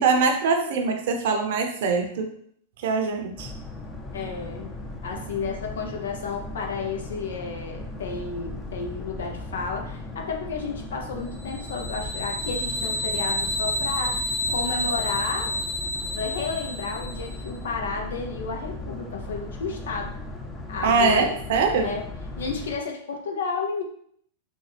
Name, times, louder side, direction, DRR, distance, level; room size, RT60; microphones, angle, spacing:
voice 1, 0.0-2.3 2.8-3.5 20.8-21.9, right 4 dB, 65° right, 4 dB, 0.6 m, -23 dB
Boat Water vehicle, 3.4-22.8, left 2 dB, 10° left, 0.6 m, -37 dB
voice 2, 4.1-4.7 5.0-15.5 16.0-20.1 20.7-21.4 21.8-22.0 22.4-23.8, left 4 dB, 75° left, 2 dB, 0.6 m, -32 dB
sound 1, 11.4-17.4, left 1 dB, 60° left, 1.2 m, -29 dB
4.0 x 2.3 x 3.2 m, 0.65 s
hypercardioid pair, 105°, 0 cm